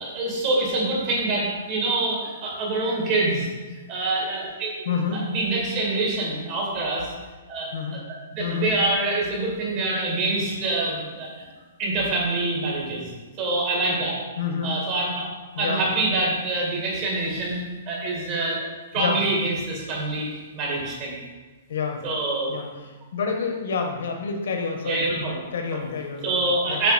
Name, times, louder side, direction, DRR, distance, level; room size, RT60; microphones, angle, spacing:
voice 1, 0.0-3.5 3.9-4.7 5.1-7.1 7.5-8.0 8.3-11.5 11.8-13.1 13.4-14.2 14.6-15.3 15.6-17.6 17.9-18.7 18.9-20.3 20.5-21.2 22.0-22.5 24.8-25.4 26.2-26.9, right 2 dB, 25° right, -3 dB, 2.0 m, -25 dB
voice 2, 4.8-5.2 7.7-8.1 8.4-8.7 14.4-14.7 15.5-15.8 18.9-19.2 21.7-22.0 22.5-25.1 25.5-26.2 26.7-26.8, left 5 dB, 65° left, 2 dB, 1.4 m, -28 dB
8.2 x 5.6 x 4.3 m, 1.2 s
hypercardioid pair, 175°, 0 cm